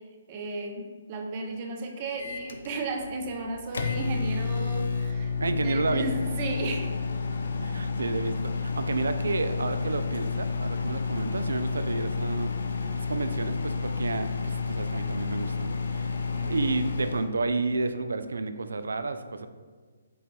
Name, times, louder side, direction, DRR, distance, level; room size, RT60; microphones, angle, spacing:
voice 1, 0.3-5.3 5.6-6.9 16.3-16.6, right 2 dB, 35° right, 2 dB, 0.6 m, -34 dB
Microwave oven, 2.2-17.3, left 4 dB, 70° left, 0.4 m, -30 dB
voice 2, 5.4-6.1 7.3-12.5 13.1-16.1 16.5-19.5, right 3 dB, 75° right, 10 dB, 0.3 m, -31 dB
5.4 x 3.9 x 2.3 m, 1.5 s
figure-of-eight pair, 135°, 0 cm